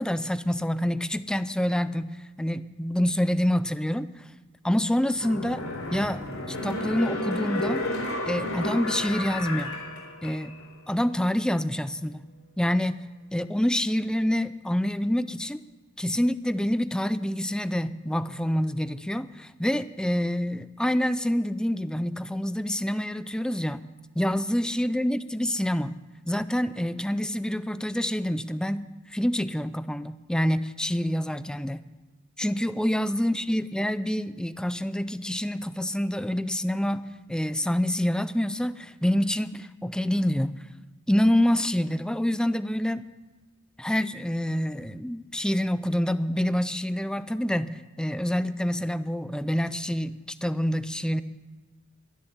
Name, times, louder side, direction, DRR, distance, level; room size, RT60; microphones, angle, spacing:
voice 1, 0.0-2.1 2.4-4.1 4.6-5.6 5.9-6.2 6.5-7.9 8.3-9.8 10.2-10.5 10.9-12.2 12.6-13.1 13.3-15.6 16.0-23.9 24.2-25.9 26.3-28.8 29.1-31.8 32.4-40.6 41.1-43.1 43.8-50.2 50.4-51.2, equal, 5° left, 14 dB, 0.4 m, -27 dB
sound 1, 5.1-10.7 11.1-11.2, left 1 dB, 90° left, 4.0 m, -32 dB
11.5 x 11.0 x 7.1 m, 1.3 s
head